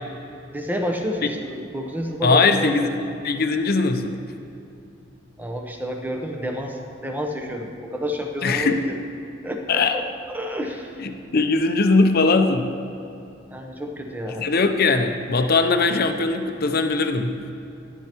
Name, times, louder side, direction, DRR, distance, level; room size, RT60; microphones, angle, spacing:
voice 1, 0.5-2.7 5.4-9.0 9.4-10.0 10.3-11.0 13.5-14.5, equal, 10° right, 3 dB, 0.8 m, -29 dB
voice 2, 2.2-2.9 3.2-4.2 8.4-8.9 9.7-10.0 11.0-12.7 14.4-17.4, left 3 dB, 50° left, 7 dB, 0.6 m, -20 dB
14.0 x 10.5 x 3.0 m, 2.7 s
head